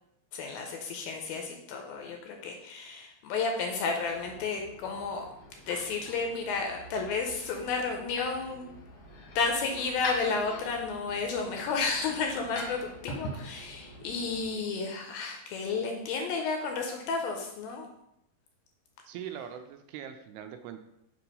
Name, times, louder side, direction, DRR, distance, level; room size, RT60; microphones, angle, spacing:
voice 1, 0.3-5.3 5.7-8.6 9.4-17.9, left 4 dB, 80° left, 2 dB, 2.3 m, -32 dB
sound 1, 4.0-14.5, left 1 dB, 65° left, 1.4 m, -44 dB
voice 2, 19.1-20.8, right 9 dB, 85° right, 7 dB, 2.4 m, -41 dB
6.8 x 2.9 x 5.3 m, 0.80 s
omnidirectional pair, 4.6 m